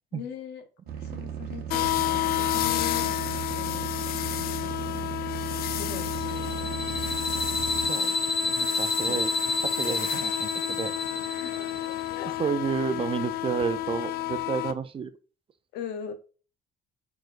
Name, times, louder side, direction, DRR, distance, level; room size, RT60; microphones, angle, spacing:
voice 1, 0.1-0.6 0.9-3.9 4.4-5.2 5.7-6.7 9.0-9.2 11.3-11.7 12.2-12.3 15.7-16.1, left 9 dB, 85° left, 1.0 m, -41 dB
sound 1, 0.9-7.9, right 9 dB, 65° right, 0.8 m, -36 dB
sound 2, 1.7-14.7, left 14 dB, 65° left, 0.4 m, -31 dB
sound 3, 6.2-12.2, left 3 dB, 25° left, 0.7 m, -30 dB
voice 2, 8.4-9.3 9.6-10.9 12.4-15.1, right 6 dB, 30° right, 0.5 m, -31 dB
4.5 x 4.4 x 2.5 m
cardioid pair, 110°, 17 cm